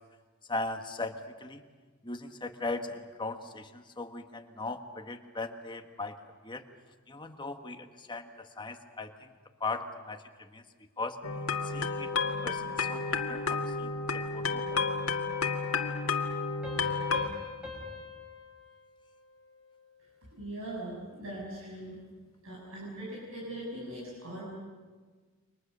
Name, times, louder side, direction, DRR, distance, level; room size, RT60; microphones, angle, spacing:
voice 1, 0.5-1.6 2.0-6.2 6.4-6.6 7.1-8.3 8.6-9.3 9.6-10.6 11.0-11.2 11.7-15.2, left 3 dB, 20° left, 6 dB, 1.5 m, -39 dB
sound 1, 11.2-17.3, left 4 dB, 75° left, 2.0 m, -31 dB
sound 2, 16.6-19.9, left 3 dB, 5° right, 6.9 m, -45 dB
voice 2, 20.3-22.0 22.4-24.4, right 1 dB, 70° right, -5 dB, 6.9 m, -40 dB
29.0 x 25.0 x 6.8 m, 1.4 s
head